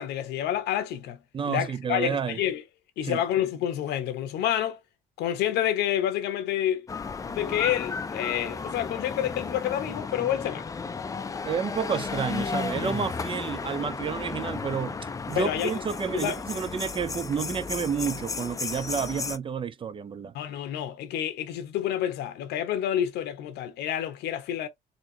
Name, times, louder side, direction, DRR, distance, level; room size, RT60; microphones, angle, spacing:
voice 1, 0.0-1.2 1.5-2.6 3.0-4.8 5.2-6.9 7.2-10.7 15.3-15.7 16.1-16.4 20.3-24.7, left 11 dB, 80° left, 1.0 m, -28 dB
voice 2, 1.3-2.4 3.0-3.2 11.4-15.0 15.3-20.3, right 6 dB, 30° right, 0.5 m, -30 dB
sound 1, 6.9-19.4, left 4 dB, 20° left, 0.5 m, -34 dB
4.2 x 2.9 x 2.8 m
cardioid pair, 110°, 17 cm